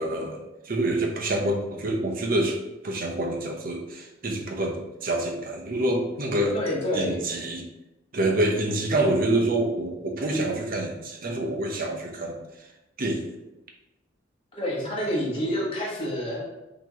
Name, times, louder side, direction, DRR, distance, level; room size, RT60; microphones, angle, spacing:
voice 1, 0.0-2.6 2.8-6.5 6.9-7.6 8.1-12.4 13.0-13.2, right 1 dB, 50° right, 1 dB, 0.8 m, -27 dB
voice 2, 6.5-7.2 14.5-16.4, equal, 30° left, -5 dB, 1.2 m, -28 dB
5.9 x 3.0 x 3.0 m, 0.97 s
head